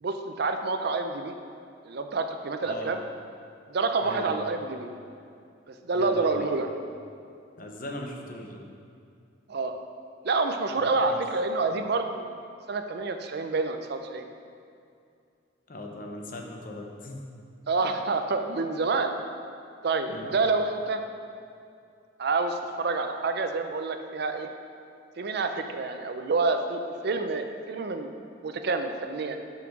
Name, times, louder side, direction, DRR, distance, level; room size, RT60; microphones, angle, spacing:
voice 1, 0.0-1.3 1.8-3.0 3.7-4.9 5.7-6.7 9.5-9.7 10.2-12.4 12.7-14.3 17.7-19.1 19.8-21.0 22.2-24.5 25.2-28.1 28.4-29.4, right 3 dB, 55° right, 7 dB, 0.5 m, -28 dB
voice 2, 2.6-2.9 4.0-4.4 5.9-6.5 7.6-8.6 10.7-11.2 15.7-17.2 17.8-18.1 20.1-20.3, left 1 dB, 45° left, 1 dB, 0.8 m, -39 dB
6.0 x 5.7 x 5.8 m, 2.4 s
head